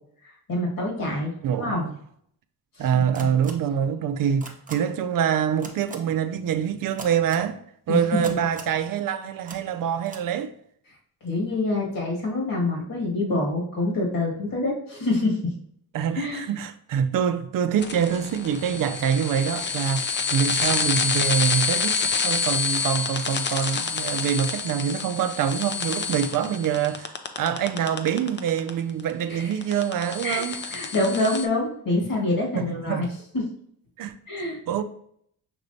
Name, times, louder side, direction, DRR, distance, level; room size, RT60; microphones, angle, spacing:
voice 1, 0.5-1.8 2.8-3.3 7.9-8.2 11.2-15.4 16.1-16.5 29.3-29.5 30.2-33.1 33.3-33.4 34.3-34.6, left 2 dB, 60° left, 1.8 m, -26 dB
voice 2, 1.4-1.9 2.8-7.6 7.9-10.5 15.9-22.0 22.2-27.1 27.4-30.7 32.5-33.1 34.0-34.1 34.7-34.8, right 8 dB, 60° right, 0.5 m, -25 dB
sound 1, 3.1-3.5 4.4-4.7 5.6-6.0 7.0-7.4 8.2-8.7 9.5-9.6 10.0-10.2, right 3 dB, 20° right, 0.7 m, -38 dB
sound 2, 17.8-28.7 29.0-31.5, left 5 dB, 30° left, 0.5 m, -27 dB
5.9 x 3.2 x 2.7 m
cardioid pair, 95°, 37 cm